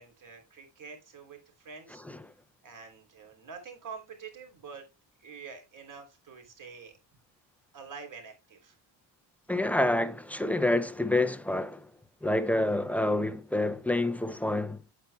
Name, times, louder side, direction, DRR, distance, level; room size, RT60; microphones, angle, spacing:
voice 1, 0.0-2.0 2.6-4.8 5.2-7.0 7.7-8.8, right 5 dB, 40° right, 3.3 m, -46 dB
voice 2, 9.5-11.9 12.2-14.8, left 1 dB, 5° left, 0.4 m, -28 dB
8.6 x 8.3 x 2.2 m
cardioid pair, 155°, 46 cm